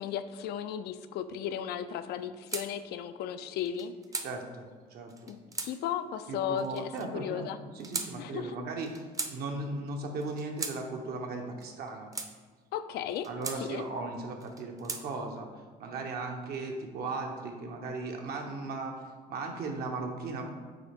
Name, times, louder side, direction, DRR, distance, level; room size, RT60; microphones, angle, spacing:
voice 1, 0.0-3.9 5.3-7.6 8.2-8.6 12.7-13.3 13.6-13.8, left 9 dB, 75° left, 11 dB, 0.4 m, -35 dB
sound 1, 2.5-2.7 3.6-4.3 5.1-5.7 6.6-7.1 7.8-8.1 8.8-9.3 10.2-10.8 11.6-12.3 13.1-13.6 14.4-15.0, right 3 dB, 20° right, 0.6 m, -37 dB
voice 2, 4.2-5.3 6.3-9.0 9.3-12.1 13.2-15.5 15.8-19.0 19.3-20.5, right 3 dB, 65° right, 3 dB, 1.0 m, -37 dB
8.8 x 3.2 x 3.5 m, 1.5 s
cardioid pair, 110°, 17 cm